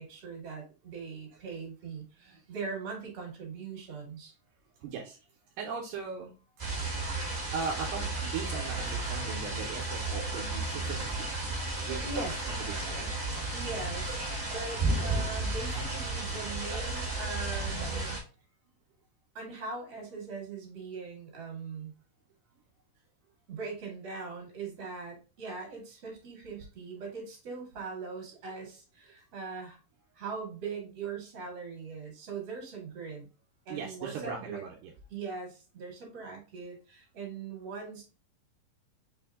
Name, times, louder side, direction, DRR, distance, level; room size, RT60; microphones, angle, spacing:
voice 1, 0.0-4.3 12.0-12.3 13.5-14.2 14.5-18.2 19.3-21.9 23.5-29.8 30.1-33.3 33.7-34.6 35.1-38.0, right 4 dB, 50° right, 0 dB, 2.6 m, -40 dB
voice 2, 4.8-5.2 5.6-6.4 7.5-11.3 11.9-12.3 12.6-13.1 33.7-34.9, right 5 dB, 80° right, -1 dB, 2.4 m, -39 dB
sound 1, 6.6-18.2, right 2 dB, 25° right, 1.5 m, -33 dB
5.6 x 2.6 x 3.4 m, 0.33 s
omnidirectional pair, 4.1 m